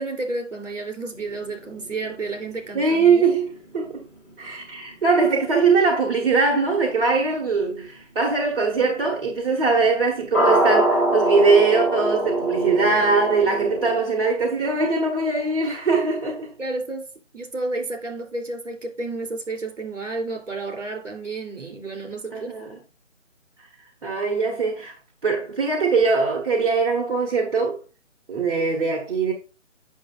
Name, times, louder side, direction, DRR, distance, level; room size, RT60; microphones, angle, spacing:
voice 1, 0.0-3.2 16.6-17.1 17.3-22.6, right 2 dB, 70° right, 3.1 m, -31 dB
sound 1, 1.1-5.1 6.5-6.6 10.3-14.0, right 1 dB, ahead, 1.1 m, -24 dB
voice 2, 2.7-3.5 3.7-4.0 4.4-16.5 22.3-22.8 24.0-24.9 25.2-27.8 28.3-29.3, right 4 dB, 45° right, 1.5 m, -21 dB
8.3 x 6.4 x 2.5 m
figure-of-eight pair, 155°, 38 cm